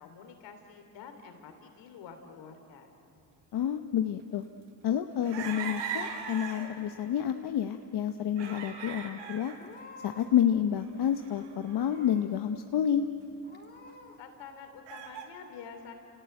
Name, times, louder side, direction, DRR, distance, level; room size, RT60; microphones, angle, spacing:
voice 1, 0.0-2.9 14.2-15.9, left 6 dB, 80° left, 6 dB, 3.1 m, -48 dB
voice 2, 3.5-4.4 4.8-9.5 10.0-13.1, left 9 dB, 65° left, 7 dB, 1.0 m, -29 dB
sound 1, 5.2-6.8 7.2-7.3 8.4-9.6 10.1-10.2 10.8-12.2 13.5-13.6 13.9-14.0 14.9-15.3, right 6 dB, 80° right, 2.3 m, -39 dB
Purr / Meow, 5.9-6.5 6.8-7.3 8.0-8.1 8.4-9.0 9.5-10.4 10.7-11.4 11.8-12.4 12.9-13.0 13.4-14.2, left 2 dB, 20° left, 3.4 m, -52 dB
29.5 x 18.0 x 9.0 m, 2.9 s
supercardioid pair, 60°, 43 cm